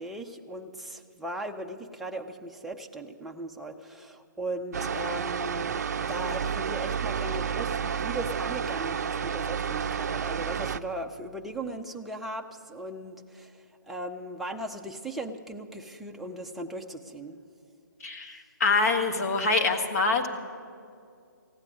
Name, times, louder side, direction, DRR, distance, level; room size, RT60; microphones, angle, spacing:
voice 1, 0.0-5.8 6.1-17.4 18.3-18.4, right 1 dB, ahead, 1 dB, 0.5 m, -38 dB
sound 1, 4.7-10.8, right 7 dB, 55° right, 0.5 m, -30 dB
voice 2, 18.0-20.3, left 3 dB, 50° left, 4 dB, 1.8 m, -25 dB
15.5 x 9.5 x 9.2 m, 2.3 s
hypercardioid pair, 150°, 11 cm